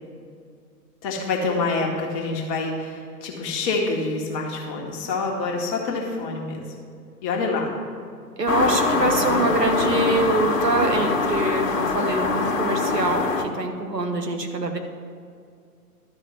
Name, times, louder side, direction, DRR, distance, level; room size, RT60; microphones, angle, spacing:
voice 1, 1.0-6.6 7.2-7.7, left 3 dB, 20° left, -1 dB, 1.1 m, -26 dB
voice 2, 8.4-14.8, right 2 dB, 80° right, 4 dB, 1.4 m, -24 dB
sound 1, 8.5-13.5, left 4 dB, 55° left, 1.2 m, -23 dB
12.0 x 4.5 x 7.6 m, 2.3 s
figure-of-eight pair, 125°, 48 cm